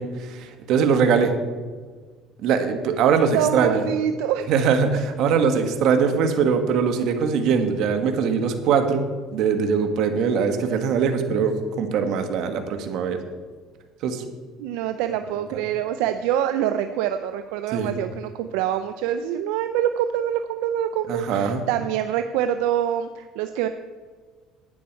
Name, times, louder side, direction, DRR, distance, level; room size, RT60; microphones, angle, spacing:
voice 1, 0.0-1.3 2.4-3.8 4.5-9.1 9.3-13.2 14.0-14.2 15.5-15.6 17.7-17.9 21.1-21.7, right 6 dB, 65° right, 6 dB, 1.5 m, -22 dB
voice 2, 3.3-4.5 14.6-23.7, right 10 dB, 85° right, 9 dB, 0.5 m, -25 dB
11.5 x 9.5 x 4.6 m, 1.5 s
cardioid pair, 110°, 0 cm